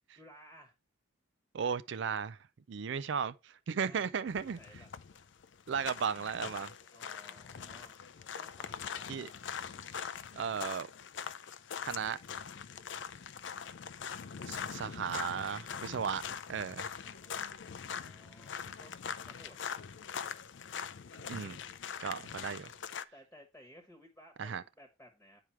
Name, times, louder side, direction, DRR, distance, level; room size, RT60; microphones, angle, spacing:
voice 1, 0.1-0.7 3.8-4.1 4.4-4.9 6.8-9.3 17.0-18.9 19.2-19.8 23.1-25.4, equal, 10° left, 1.2 m, -58 dB
voice 2, 1.5-2.4 2.7-4.6 5.7-6.7 9.1-9.3 10.4-10.9 11.8-12.2 14.5-16.2 16.5-16.9 21.3-21.6 22.0-22.7 24.4-24.6, right 6 dB, 65° right, 0.4 m, -35 dB
sound 1, 4.3-23.0, left 7 dB, 65° left, 0.5 m, -43 dB
8.9 x 4.9 x 4.5 m
head